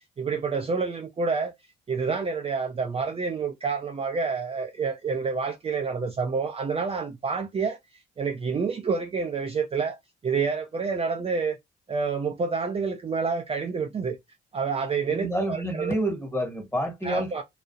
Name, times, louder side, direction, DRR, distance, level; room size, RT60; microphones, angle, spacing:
voice 1, 0.2-1.5 1.9-7.8 8.2-10.0 10.2-11.6 11.9-14.2 14.5-15.9 17.0-17.4, right 5 dB, 30° right, 0.5 m, -28 dB
voice 2, 15.1-17.4, right 1 dB, 15° left, 1.4 m, -28 dB
2.3 x 2.0 x 2.7 m
cardioid pair, 90°, 20 cm